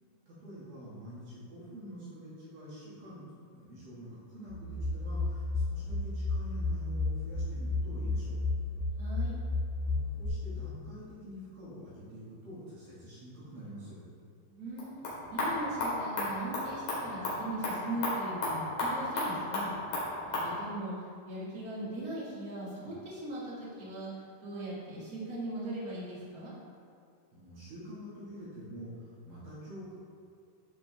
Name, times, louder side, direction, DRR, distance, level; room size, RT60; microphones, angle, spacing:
voice 1, 0.3-8.4 9.8-14.0 27.3-29.9, equal, 55° right, -9 dB, 3.3 m, -46 dB
sound 1, 4.5-10.3, left 3 dB, 90° left, 2.1 m, -32 dB
voice 2, 9.0-9.3 14.5-15.0 15.3-19.7 20.2-20.9 21.2-24.1 24.4-26.5, right 1 dB, 80° right, -9 dB, 0.8 m, -39 dB
sound 2, 14.7-20.5, left 2 dB, 55° left, 3.5 m, -34 dB
13.5 x 5.0 x 3.4 m, 2.3 s
omnidirectional pair, 5.6 m